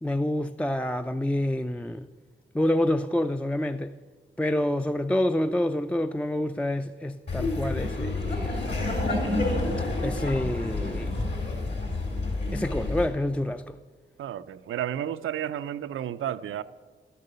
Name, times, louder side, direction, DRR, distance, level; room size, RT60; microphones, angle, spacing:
voice 1, 0.0-2.1 2.5-3.9 4.4-8.7 10.0-11.1 12.5-13.8, left 1 dB, 5° left, 0.3 m, -27 dB
Laughter, 7.3-13.1, left 2 dB, 60° left, 3.4 m, -29 dB
voice 2, 14.2-16.6, right 10 dB, 85° right, 0.4 m, -32 dB
11.5 x 6.7 x 6.8 m
cardioid pair, 55°, 20 cm